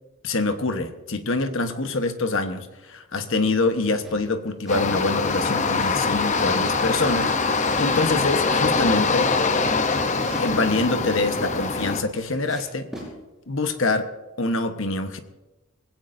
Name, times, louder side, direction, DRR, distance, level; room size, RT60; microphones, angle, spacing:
voice 1, 0.2-9.3 10.4-12.9 13.5-14.1 14.4-15.2, left 2 dB, 60° left, 7 dB, 1.2 m, -25 dB
sound 1, 4.0-4.9 5.2-6.8 7.4-8.6 9.3-11.2 11.7-13.1, equal, ahead, 5.5 m, -43 dB
sound 2, 4.7-12.0, left 4 dB, 35° left, 0.8 m, -23 dB
20.5 x 16.5 x 2.7 m, 1.1 s
head